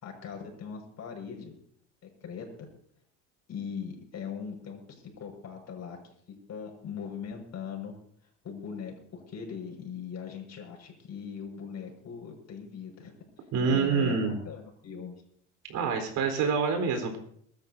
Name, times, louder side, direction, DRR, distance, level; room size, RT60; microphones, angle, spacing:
voice 1, 0.0-1.5 2.0-2.7 3.5-6.0 6.3-7.9 8.4-15.1, left 7 dB, 50° left, 1 dB, 5.9 m, -40 dB
voice 2, 13.5-14.3 15.7-17.2, right 5 dB, 60° right, 4 dB, 4.2 m, -26 dB
23.5 x 13.0 x 2.8 m, 0.66 s
hypercardioid pair, 70°, 35 cm